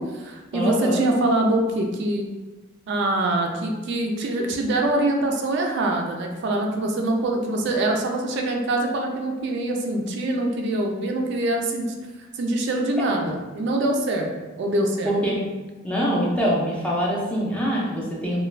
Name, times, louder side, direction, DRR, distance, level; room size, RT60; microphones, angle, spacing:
voice 1, 0.0-2.2 2.9-11.9 12.4-14.3 14.6-15.2, right 1 dB, 55° right, 2 dB, 0.3 m, -24 dB
voice 2, 0.5-1.0 15.1-15.4 15.8-18.4, equal, 5° left, -5 dB, 0.4 m, -24 dB
2.4 x 2.2 x 3.2 m, 1.2 s
head